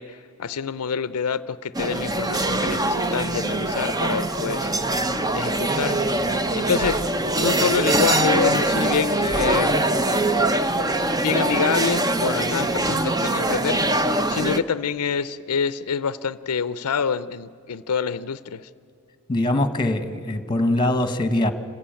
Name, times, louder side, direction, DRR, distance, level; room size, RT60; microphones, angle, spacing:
voice 1, 0.0-4.7 5.3-6.0 6.5-7.0 7.3-9.8 11.2-13.8 14.3-18.7, left 6 dB, 80° left, 15 dB, 0.5 m, -26 dB
sound 1, 1.7-14.6, right 1 dB, 15° right, 0.7 m, -23 dB
voice 2, 19.3-21.5, left 1 dB, 20° left, 10 dB, 1.3 m, -22 dB
26.5 x 15.5 x 8.9 m, 2.5 s
head